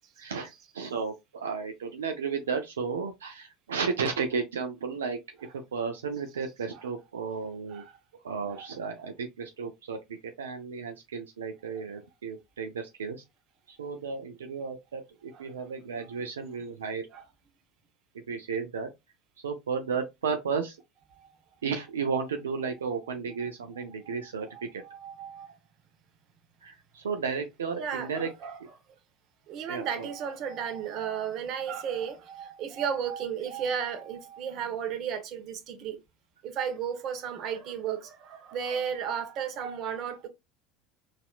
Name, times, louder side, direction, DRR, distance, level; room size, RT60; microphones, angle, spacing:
voice 1, 0.2-7.8 8.2-10.0 10.4-13.2 13.7-17.1 18.3-18.9 19.4-20.8 21.6-24.8 26.6-28.3 29.7-30.1, right 5 dB, 85° right, 0.4 m, -33 dB
voice 2, 24.8-25.5 27.7-28.6 29.5-36.0 36.4-40.3, right 7 dB, 55° right, 0.8 m, -34 dB
4.1 x 2.5 x 2.3 m
hypercardioid pair, 80°, 0 cm